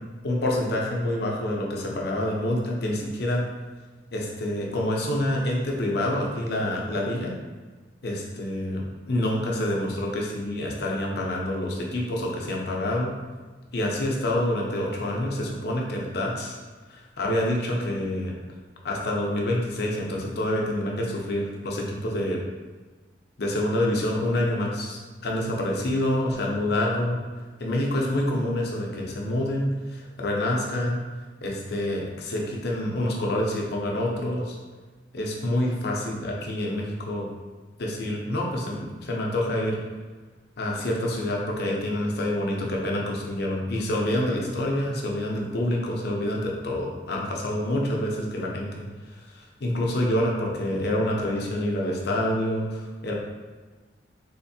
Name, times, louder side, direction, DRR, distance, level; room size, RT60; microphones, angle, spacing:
voice 1, 0.2-3.4 4.1-7.3 8.0-13.1 13.7-16.6 16.9-18.3 18.8-22.4 23.4-27.2 27.6-31.0 31.4-34.6 35.1-37.3 37.8-39.8 40.6-53.1, left 1 dB, 55° left, -1 dB, 0.5 m, -27 dB
3.5 x 2.5 x 2.6 m, 1.4 s
head